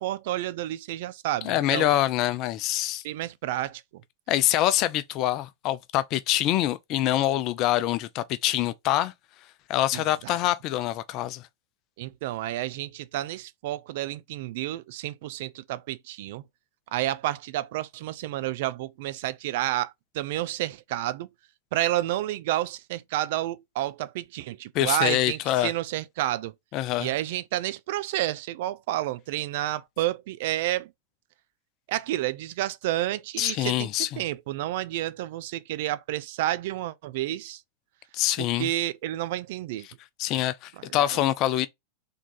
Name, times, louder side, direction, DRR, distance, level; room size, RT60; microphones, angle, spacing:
voice 1, 0.0-1.9 3.0-3.8 9.9-10.4 12.0-16.4 16.9-21.3 21.7-26.5 27.0-30.9 31.9-37.6 38.4-39.9 41.1-41.2, right 15 dB, 50° right, 0.4 m, -30 dB
voice 2, 1.4-3.0 4.3-9.1 9.7-11.5 24.7-25.7 26.7-27.1 33.4-34.2 38.1-38.7 40.2-41.7, left 13 dB, 40° left, 0.5 m, -25 dB
3.7 x 3.5 x 4.0 m
figure-of-eight pair, 90°, 0 cm